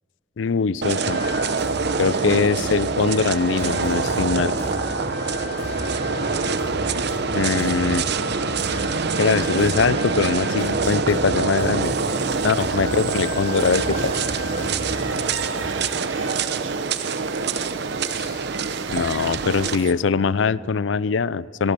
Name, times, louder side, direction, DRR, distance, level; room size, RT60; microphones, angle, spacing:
voice 1, 0.4-1.2 2.0-4.5 7.3-8.1 9.2-11.9 12.4-14.1 18.9-21.7, left 5 dB, 80° left, 20 dB, 0.5 m, -22 dB
sound 1, 0.8-19.8, right 4 dB, 60° right, 0.9 m, -25 dB
Desert background music, 1.0-15.7, left 1 dB, 15° left, 5.9 m, -34 dB
voice 2, 5.0-6.1 14.6-16.5 16.9-18.5 21.6-21.7, left 2 dB, 35° left, -1 dB, 4.0 m, -45 dB
sound 2, 11.8-19.9, right 7 dB, 90° right, 0.8 m, -36 dB
24.0 x 22.5 x 6.8 m, 2.6 s
head